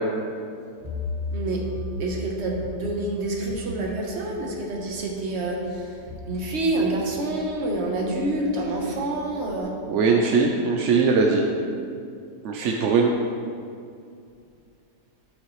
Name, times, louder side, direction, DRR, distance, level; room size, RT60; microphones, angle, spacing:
sound 1, 0.8-9.6, left 2 dB, 25° right, 1.2 m, -38 dB
voice 1, 1.3-1.7 2.0-9.8, right 2 dB, 45° right, 0 dB, 1.2 m, -27 dB
voice 2, 9.9-11.4 12.4-13.1, right 4 dB, 65° right, 1 dB, 0.8 m, -20 dB
11.5 x 5.7 x 3.2 m, 2.4 s
omnidirectional pair, 1.7 m